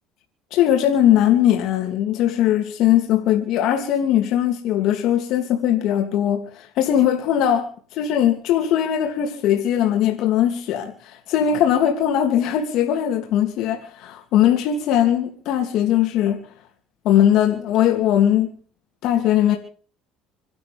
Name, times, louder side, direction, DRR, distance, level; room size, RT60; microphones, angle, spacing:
voice 1, 0.5-16.4 17.0-18.6 19.0-19.6, left 10 dB, 65° left, 3.0 m, -20 dB
27.5 x 12.5 x 3.7 m
cardioid pair, 135°, 0 cm